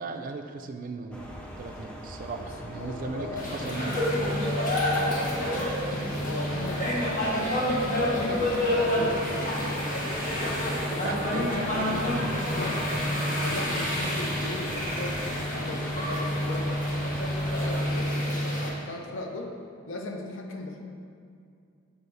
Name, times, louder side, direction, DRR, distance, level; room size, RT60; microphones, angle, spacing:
voice 1, 0.0-4.4 11.0-13.2, right 3 dB, 40° right, 6 dB, 0.4 m, -37 dB
sound 1, 1.1-17.9, equal, 5° left, 0.6 m, -42 dB
voice 2, 2.7-3.6 4.7-7.4 8.0-11.1 11.4-11.6 12.6-13.0 13.3-19.5 19.9-20.8, left 2 dB, 65° left, 2 dB, 0.7 m, -38 dB
sound 2, 3.4-18.7, left 1 dB, 40° left, 1.2 m, -28 dB
7.0 x 3.4 x 5.4 m, 2.4 s
head